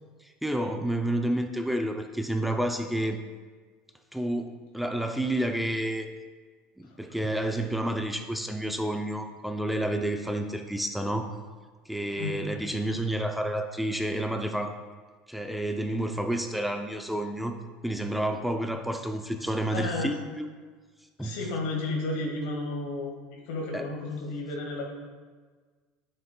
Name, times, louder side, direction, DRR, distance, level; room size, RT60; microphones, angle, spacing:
voice 1, 0.2-3.2 4.1-6.1 6.8-11.3 11.9-14.7 15.3-17.6 17.8-20.5 21.2-21.4 23.7-23.8, right 1 dB, ahead, 5 dB, 0.4 m, -30 dB
voice 2, 19.7-20.2 21.2-24.9, left 2 dB, 80° left, 0 dB, 1.8 m, -32 dB
9.2 x 6.6 x 2.2 m, 1.4 s
supercardioid pair, 120°, 4 cm